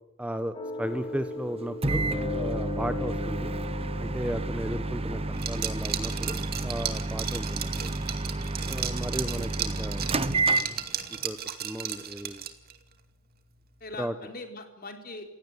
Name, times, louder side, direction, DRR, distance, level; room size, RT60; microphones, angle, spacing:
voice 1, 0.2-3.5 4.0-7.9 8.7-10.1 11.2-12.4 14.0-14.1, equal, 5° right, 9 dB, 1.1 m, -35 dB
sound 1, 0.5-6.0, left 4 dB, 20° left, 4.5 m, -39 dB
Microwave oven, 1.8-11.2, right 2 dB, 25° right, 1.1 m, -30 dB
Liquid, 5.4-12.8, right 10 dB, 45° right, 2.3 m, -35 dB
voice 2, 13.8-15.2, left 2 dB, 45° left, 5 dB, 4.4 m, -42 dB
28.5 x 17.0 x 9.7 m, 0.93 s
head